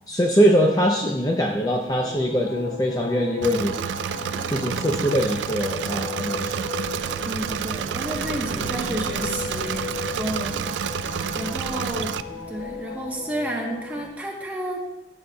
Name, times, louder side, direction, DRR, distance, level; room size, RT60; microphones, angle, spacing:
voice 1, 0.1-3.7 4.5-6.7, equal, 20° left, 0 dB, 0.5 m, -22 dB
sound 1, 1.9-14.1, left 4 dB, 80° left, 1.5 m, -36 dB
Engine / Mechanisms, 3.4-12.2, right 8 dB, 90° right, 0.3 m, -29 dB
Vehicle, 6.7-13.2, equal, 65° right, 2.3 m, -41 dB
voice 2, 7.2-10.7 11.3-12.2 12.5-14.8, right 1 dB, 10° right, -2 dB, 1.1 m, -31 dB
12.5 x 6.8 x 2.3 m, 1.0 s
head